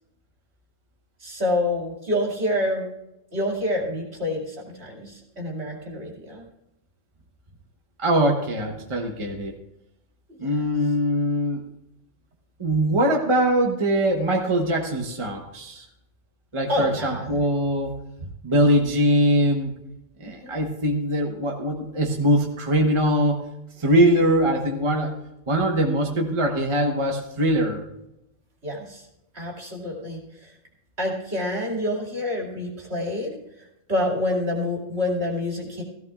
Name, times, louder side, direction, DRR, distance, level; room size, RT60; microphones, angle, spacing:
voice 1, 1.2-2.9 3.3-6.4 10.4-10.7 16.7-17.4 18.2-18.3 20.2-20.5 28.6-29.0 29.3-30.5 31.0-33.4 33.9-35.8, left 1 dB, 55° right, -1 dB, 2.7 m, -27 dB
voice 2, 8.0-9.5 10.4-11.6 12.6-15.8 16.5-17.9 18.4-19.7 20.2-23.4 23.8-25.1 25.5-27.8, equal, 25° right, 2 dB, 1.0 m, -22 dB
15.5 x 15.0 x 2.4 m, 0.88 s
omnidirectional pair, 1.3 m